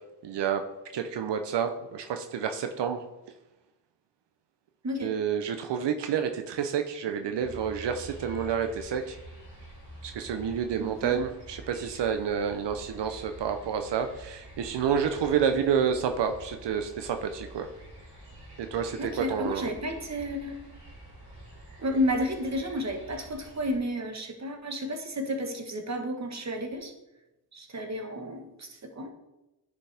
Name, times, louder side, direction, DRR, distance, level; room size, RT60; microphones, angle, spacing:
voice 1, 0.2-0.7 0.9-3.0 5.0-9.2 10.0-17.7 18.6-19.7, right 7 dB, 80° right, 7 dB, 0.6 m, -29 dB
sound 1, 7.4-23.8, right 2 dB, 65° right, 2.7 m, -47 dB
voice 2, 10.8-11.2 19.0-20.6 21.8-26.9 27.5-29.1, equal, 40° right, 5 dB, 1.2 m, -32 dB
10.0 x 5.1 x 3.4 m, 0.99 s
cardioid pair, 65°, 41 cm